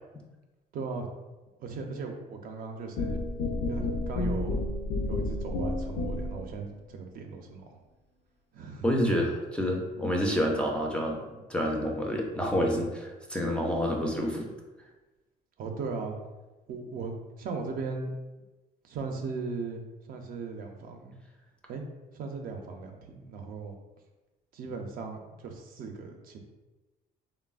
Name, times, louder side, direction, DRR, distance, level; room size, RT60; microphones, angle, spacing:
voice 1, 0.7-1.1 1.6-3.2 3.7-4.6 5.1-7.8 8.5-8.9 15.6-16.1 16.7-18.1 18.8-21.2 21.7-21.9 22.1-23.8 24.5-26.4, right 4 dB, 60° right, 3 dB, 0.4 m, -38 dB
sound 1, 3.0-6.5, left 2 dB, 75° left, 0.4 m, -30 dB
voice 2, 8.8-14.5, equal, 5° left, 0 dB, 0.3 m, -28 dB
3.2 x 2.0 x 2.3 m, 1.1 s
cardioid pair, 110°, 17 cm